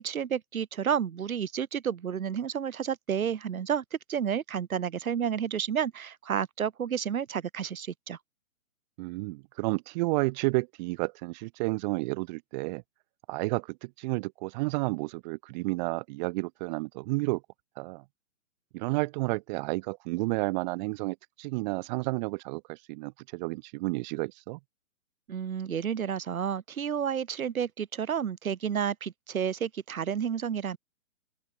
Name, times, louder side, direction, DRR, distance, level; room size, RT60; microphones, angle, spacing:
voice 1, 0.0-3.8 4.1-8.2 25.3-30.8, right 8 dB, 80° right, 1.5 m, -31 dB
voice 2, 9.0-12.8 13.3-17.4 17.8-18.0 18.7-24.6, right 25 dB, 30° right, 2.9 m, -31 dB
open air
hypercardioid pair, 145°, 42 cm